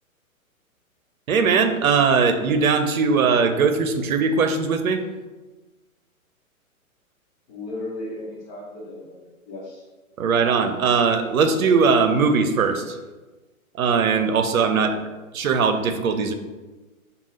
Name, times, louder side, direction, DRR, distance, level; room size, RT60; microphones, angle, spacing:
voice 1, 1.3-5.0 10.2-13.0 13.8-15.0 15.3-16.3, right 5 dB, 75° right, 8 dB, 0.7 m, -20 dB
voice 2, 7.5-9.8 14.8-15.0, left 2 dB, 35° left, -7 dB, 1.1 m, -36 dB
5.2 x 2.4 x 3.2 m, 1.2 s
hypercardioid pair, 125°, 43 cm